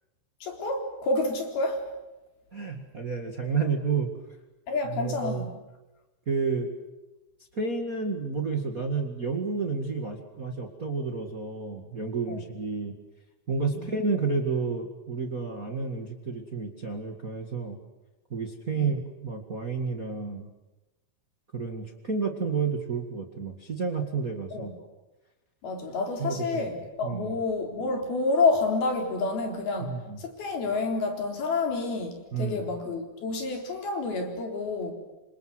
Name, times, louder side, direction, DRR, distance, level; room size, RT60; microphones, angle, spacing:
voice 1, 0.4-1.8 4.7-5.5 12.3-12.4 13.7-13.9 18.8-18.9 24.5-24.7 25.6-34.9, left 3 dB, 80° left, 3 dB, 5.8 m, -29 dB
voice 2, 2.5-4.1 4.9-5.5 6.2-6.8 7.5-12.9 13.5-17.8 18.3-20.5 21.5-24.7 26.2-26.6 27.0-27.4 29.8-30.2 32.3-32.7, right 4 dB, 30° right, 4 dB, 1.7 m, -30 dB
27.0 x 26.5 x 7.9 m, 1.0 s
omnidirectional pair, 4.3 m